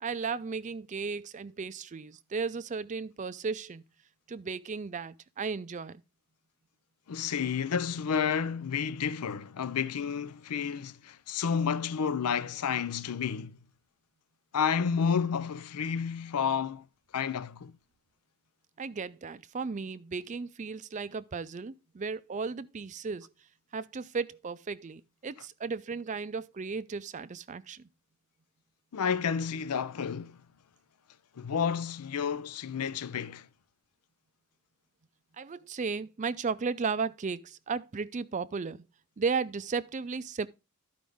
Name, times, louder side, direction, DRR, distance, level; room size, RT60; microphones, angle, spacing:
voice 1, 0.0-3.8 4.3-6.0 18.8-23.3 23.7-27.9 35.4-38.8 39.2-40.5, right 5 dB, 35° right, 0.4 m, -35 dB
voice 2, 7.1-13.6 14.5-16.8 17.1-17.7 28.9-30.4 31.4-33.5, left 6 dB, 90° left, 0.5 m, -30 dB
12.5 x 5.1 x 3.5 m
head